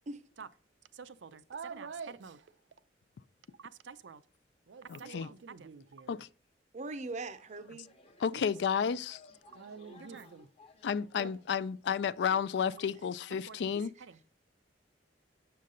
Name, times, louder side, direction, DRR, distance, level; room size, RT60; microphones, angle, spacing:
voice 1, 0.9-2.5 3.6-4.2 4.7-6.3 8.3-8.5 9.5-10.5 11.2-11.4 13.3-14.2, right 5 dB, 90° right, 0.5 m, -47 dB
voice 2, 4.9-5.3 6.1-6.3 8.2-9.2 10.8-13.9, left 7 dB, 70° left, 0.3 m, -32 dB
voice 3, 6.7-7.9 8.8-9.0 12.5-13.1 13.7-14.1, right 3 dB, 40° right, 0.6 m, -43 dB
sound 1, 7.3-12.4, left 3 dB, 35° left, 1.0 m, -59 dB
7.4 x 5.7 x 3.8 m
head